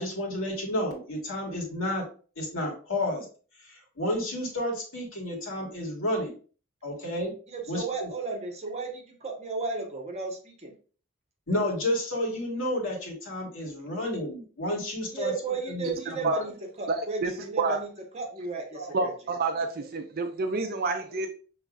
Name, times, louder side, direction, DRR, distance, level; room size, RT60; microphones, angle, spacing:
voice 1, 0.0-2.0 2.4-3.3 3.6-6.3 6.8-7.3 7.7-8.1 11.5-15.3 15.7-16.3 18.7-19.0, left 1 dB, 80° left, -1 dB, 1.7 m, -31 dB
voice 2, 7.5-10.7 15.1-16.5 16.8-17.9 18.1-19.1, right 4 dB, 35° right, 1 dB, 1.1 m, -34 dB
voice 3, 16.9-17.3 17.6-17.8 18.9-21.3, right 3 dB, 50° right, 6 dB, 0.5 m, -28 dB
5.8 x 3.1 x 2.4 m, 0.39 s
head